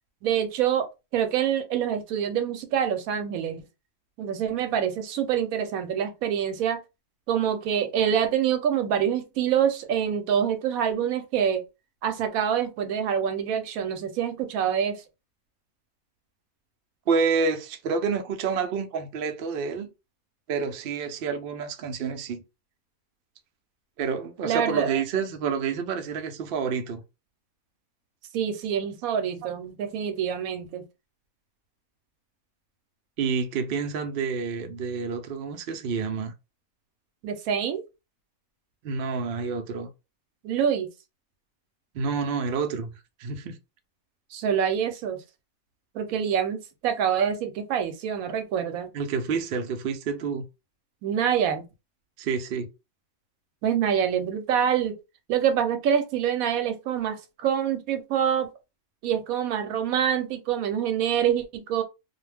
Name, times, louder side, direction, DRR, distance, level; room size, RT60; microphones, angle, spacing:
voice 1, 0.2-0.8 1.1-3.6 4.2-6.8 7.3-11.6 12.0-15.0 24.4-24.9 28.3-30.9 37.2-37.8 40.4-40.9 44.3-45.2 45.9-48.9 51.0-51.7 53.6-54.9 55.3-58.5 59.0-61.8, right 8 dB, 80° right, 1.0 m, -26 dB
voice 2, 17.1-19.9 20.5-22.4 24.0-27.0 29.0-29.2 33.2-36.3 38.8-39.9 41.9-43.6 48.9-50.4 52.2-52.7, right 5 dB, 65° right, 0.6 m, -28 dB
2.4 x 2.1 x 3.3 m
omnidirectional pair, 1.5 m